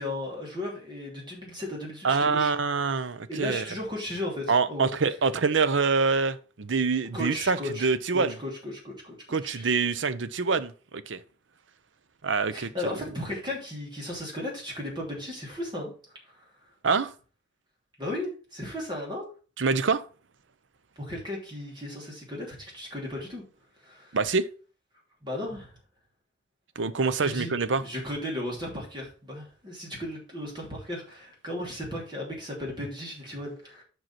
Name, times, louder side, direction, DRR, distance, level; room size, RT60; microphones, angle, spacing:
voice 1, 0.0-2.5 3.3-4.9 7.1-7.9 8.1-9.1 9.4-9.7 12.5-15.9 18.0-19.3 21.0-23.4 23.8-24.2 25.2-25.7 27.2-33.8, left 1 dB, 25° right, 3.0 m, -35 dB
voice 2, 2.0-3.6 4.5-8.3 9.3-11.2 12.2-13.0 16.8-17.1 19.6-20.0 24.1-24.5 26.8-27.8, right 4 dB, 75° right, 0.7 m, -25 dB
5.7 x 5.3 x 5.7 m
head